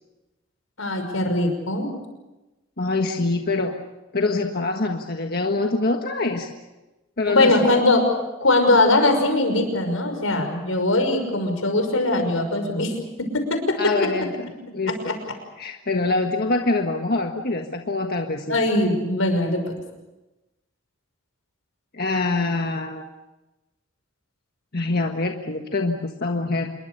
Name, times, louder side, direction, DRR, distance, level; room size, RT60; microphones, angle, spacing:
voice 1, 0.8-1.9 7.3-8.1 8.4-13.9 15.1-15.2 18.5-19.7, left 2 dB, 85° left, 6 dB, 5.8 m, -21 dB
voice 2, 2.8-3.8 4.1-6.5 7.2-7.7 13.8-15.2 15.6-18.6 21.9-23.0 24.7-26.7, left 3 dB, 50° left, 3 dB, 1.5 m, -25 dB
27.0 x 22.5 x 6.8 m, 1.1 s
head